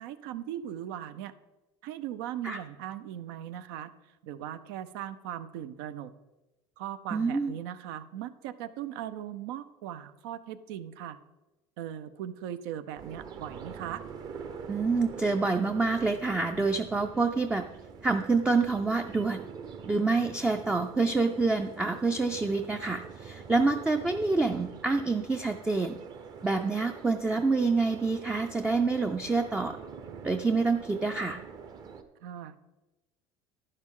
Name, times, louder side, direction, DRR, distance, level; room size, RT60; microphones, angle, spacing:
voice 1, 0.0-1.3 1.8-3.9 4.2-6.1 6.8-11.2 11.8-14.0 32.2-32.6, right 11 dB, 90° right, 13 dB, 0.7 m, -39 dB
voice 2, 7.1-7.5 14.7-17.6 18.0-19.5 19.9-26.0 26.4-29.8 30.2-31.4, right 3 dB, 10° right, 7 dB, 0.4 m, -27 dB
sound 1, 13.0-32.0, right 6 dB, 35° right, 0.8 m, -45 dB
11.0 x 11.0 x 3.8 m, 1.1 s
cardioid pair, 155°, 11 cm